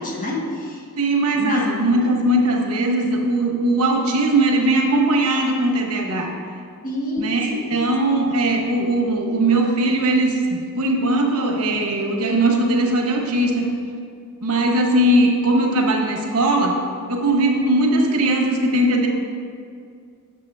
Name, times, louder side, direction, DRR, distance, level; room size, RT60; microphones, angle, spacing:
voice 1, 0.0-0.8 1.3-1.8 6.8-7.9, left 1 dB, 40° left, -2 dB, 1.2 m, -28 dB
voice 2, 1.0-6.3 7.2-13.7 14.4-16.8 17.1-19.1, right 1 dB, 85° right, 1 dB, 1.0 m, -19 dB
7.4 x 6.9 x 3.3 m, 2.3 s
head